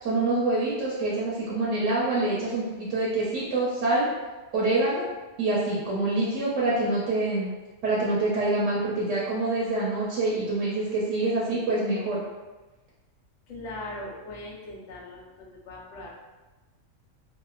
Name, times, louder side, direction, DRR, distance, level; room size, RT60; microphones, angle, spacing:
voice 1, 0.0-4.1 4.5-5.0 5.4-7.5 7.8-12.2, right 2 dB, 70° right, -6 dB, 0.9 m, -26 dB
voice 2, 13.5-16.1, left 1 dB, 70° left, -3 dB, 0.9 m, -40 dB
2.9 x 2.1 x 2.3 m, 1.2 s
omnidirectional pair, 1.4 m